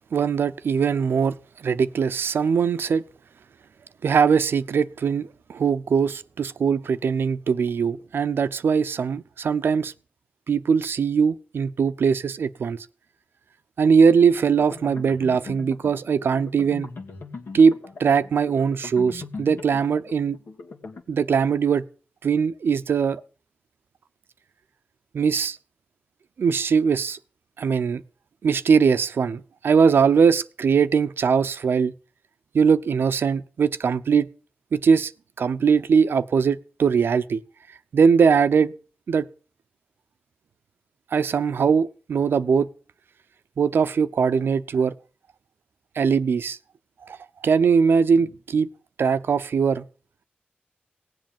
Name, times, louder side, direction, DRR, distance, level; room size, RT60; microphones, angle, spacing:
voice 1, 0.1-1.3 1.6-3.0 4.0-9.9 10.5-12.8 13.8-16.9 17.5-17.7 18.0-20.4 21.1-21.8 22.2-23.2 25.1-25.6 26.4-27.2 27.6-28.0 28.4-31.9 32.5-34.3 34.7-35.1 35.4-37.4 37.9-38.7 39.1-39.2 41.1-42.7 43.6-44.9 46.0-46.6 47.1-47.2 47.4-48.7 49.0-49.8, right 6 dB, 85° right, 0.7 m, -21 dB
sound 1, 14.3-21.0, left 3 dB, 80° left, 2.0 m, -40 dB
18.0 x 7.8 x 7.3 m
cardioid pair, 55°, 4 cm